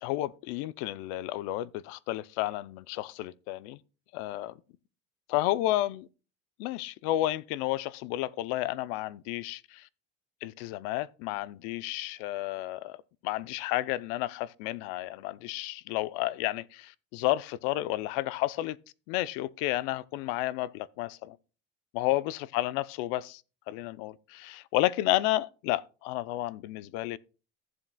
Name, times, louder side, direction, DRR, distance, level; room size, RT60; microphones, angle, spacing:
voice 1, 0.0-3.8 4.1-4.5 5.3-6.1 6.6-9.9 10.4-13.0 13.2-18.8 19.1-21.4 21.9-23.4 23.7-27.2, left 16 dB, 90° left, 0.6 m, -31 dB
15.0 x 7.4 x 2.2 m
cardioid pair, 165°, 30 cm